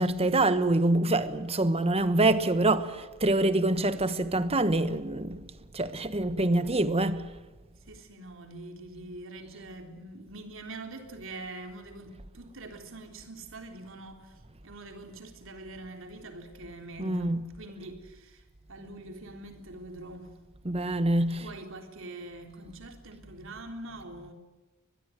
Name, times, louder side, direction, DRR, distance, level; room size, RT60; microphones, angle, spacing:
voice 1, 0.0-5.5 5.7-7.3 17.0-17.4 20.6-21.5, right 2 dB, 30° right, 1.3 m, -25 dB
voice 2, 7.9-20.4 21.4-24.3, right 2 dB, 65° right, 3.7 m, -44 dB
23.0 x 21.5 x 9.5 m
head